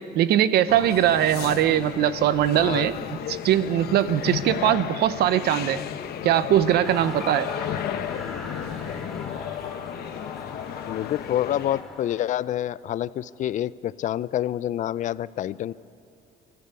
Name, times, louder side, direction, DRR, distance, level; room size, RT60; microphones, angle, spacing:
voice 1, 0.1-2.9 3.3-5.8 6.2-7.5, right 11 dB, 75° right, 14 dB, 0.9 m, -21 dB
sound 1, 0.7-11.8, left 10 dB, 70° left, 1.0 m, -34 dB
voice 2, 2.5-2.9 10.9-15.7, left 12 dB, 50° left, 18 dB, 0.4 m, -27 dB
sound 2, 6.8-12.4, left 1 dB, ahead, 2.6 m, -40 dB
24.0 x 13.5 x 8.3 m, 2.6 s
cardioid pair, 110°, 17 cm